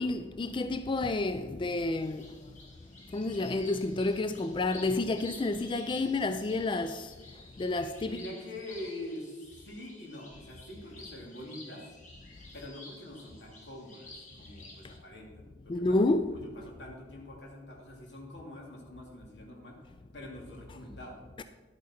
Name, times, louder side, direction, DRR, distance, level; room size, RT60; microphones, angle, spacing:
voice 1, 0.0-2.6 3.1-8.2 14.8-14.9 15.7-16.3 21.4-21.5, left 2 dB, 30° left, 0.3 m, -30 dB
sound 1, 1.9-15.0, left 2 dB, 45° left, 1.8 m, -52 dB
voice 2, 8.0-11.9 12.5-16.0 16.3-21.2, left 1 dB, 85° left, 2.6 m, -45 dB
11.5 x 8.5 x 4.3 m
head